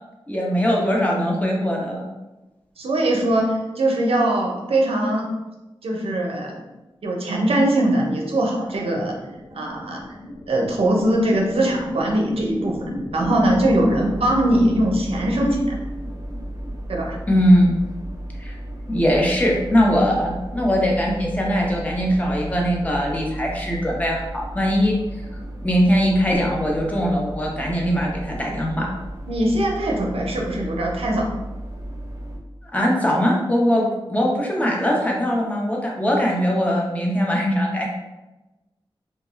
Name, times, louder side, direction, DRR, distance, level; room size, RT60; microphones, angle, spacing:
voice 1, 0.3-2.0 17.3-17.7 18.4-18.5 18.9-24.9 25.6-28.9 32.7-37.9, equal, 15° left, -2 dB, 0.6 m, -21 dB
voice 2, 2.8-5.3 5.8-6.6 7.0-9.2 9.5-10.0 10.5-12.8 13.1-15.8 16.9-17.2 29.3-31.3, right 1 dB, 85° right, 0 dB, 0.5 m, -21 dB
sound 1, 8.3-17.8, left 1 dB, 70° left, 0.7 m, -35 dB
sound 2, 13.2-32.4, right 1 dB, 40° right, 0.5 m, -34 dB
2.2 x 2.1 x 3.0 m, 1.0 s
wide cardioid pair, 85°, 10 cm